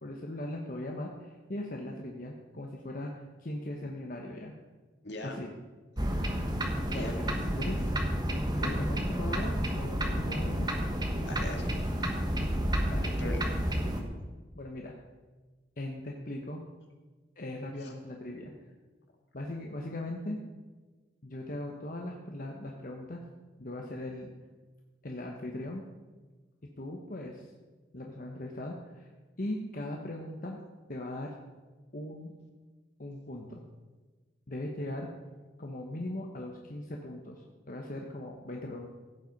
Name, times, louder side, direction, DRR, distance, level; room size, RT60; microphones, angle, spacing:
voice 1, 0.0-4.5 5.2-5.5 6.9-7.9 8.6-10.7 12.8-13.0 14.5-14.9 15.8-16.6 17.4-18.5 19.3-20.4 21.2-23.2 23.6-24.3 25.0-25.8 26.8-27.5 27.9-29.1 29.4-30.6 30.9-31.4 31.9-32.3 33.0-33.6 34.5-35.1 35.6-38.9, left 1 dB, 50° left, 0 dB, 1.1 m, -39 dB
voice 2, 5.0-5.4 6.8-7.2 11.2-11.9 13.0-13.6 17.8-17.9, left 2 dB, 65° left, 3 dB, 1.9 m, -41 dB
sound 1, 6.0-14.0, equal, 20° right, 1.3 m, -30 dB
15.0 x 8.1 x 5.3 m, 1.3 s
head